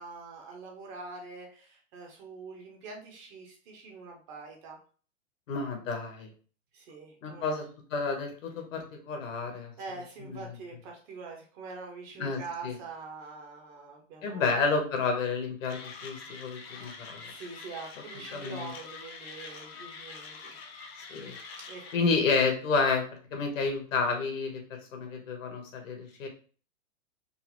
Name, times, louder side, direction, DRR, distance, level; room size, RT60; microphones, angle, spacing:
voice 1, 0.0-4.8 6.7-7.6 9.8-14.5 17.2-20.5 21.7-22.1, right 4 dB, 25° right, 1 dB, 0.6 m, -44 dB
voice 2, 5.5-6.3 7.2-9.7 10.2-10.6 12.2-12.7 14.2-17.2 18.3-18.7 21.1-21.3 21.9-23.0 23.3-26.3, left 4 dB, 75° left, 3 dB, 1.2 m, -30 dB
Mechanisms, 15.7-22.0, left 4 dB, 50° left, 0.7 m, -45 dB
3.8 x 2.0 x 3.0 m, 0.40 s
hypercardioid pair, 145°, 39 cm